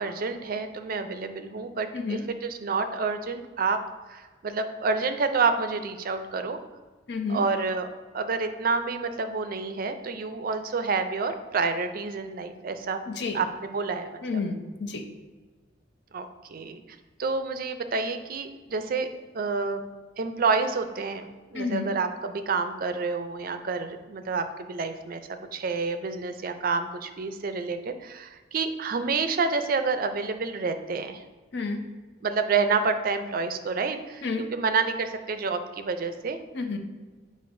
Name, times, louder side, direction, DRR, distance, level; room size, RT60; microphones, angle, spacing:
voice 1, 0.0-3.8 4.1-6.6 7.3-7.9 8.1-13.0 13.3-14.1 16.1-16.8 17.2-19.1 19.3-19.8 20.2-25.2 25.5-31.2 32.2-36.4, right 4 dB, 50° right, 9 dB, 0.4 m, -28 dB
voice 2, 7.1-7.4 13.1-13.4 14.2-15.1 21.5-21.9 31.5-31.8 34.2-34.5 36.5-36.8, left 4 dB, 65° left, 5 dB, 0.7 m, -30 dB
8.4 x 5.1 x 2.6 m, 1.3 s
head